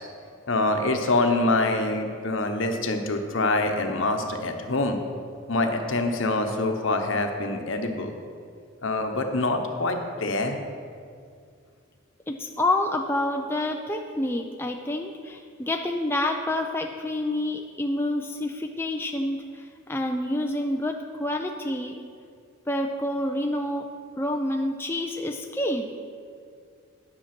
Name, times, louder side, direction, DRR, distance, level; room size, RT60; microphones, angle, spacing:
voice 1, 0.5-5.0 5.5-8.1 8.8-10.6, left 2 dB, 70° left, 5 dB, 1.0 m, -25 dB
voice 2, 12.3-22.0 22.7-23.9 24.2-25.9, left 1 dB, 10° left, 3 dB, 0.4 m, -28 dB
10.0 x 6.5 x 5.9 m, 2.2 s
head